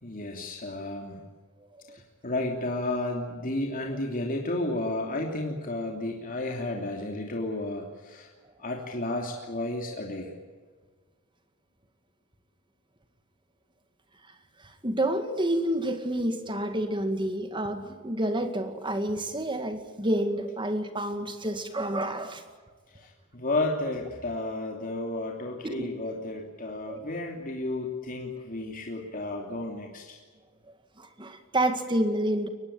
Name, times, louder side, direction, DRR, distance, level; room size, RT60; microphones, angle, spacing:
voice 1, 0.0-1.2 1.9-8.3 8.6-10.3 23.0-30.2, left 2 dB, 40° left, 1 dB, 2.9 m, -32 dB
voice 2, 14.8-22.4 25.6-25.9 26.9-27.0 31.0-32.5, right 1 dB, 20° right, 8 dB, 2.0 m, -29 dB
23.0 x 20.5 x 8.9 m, 1.4 s
head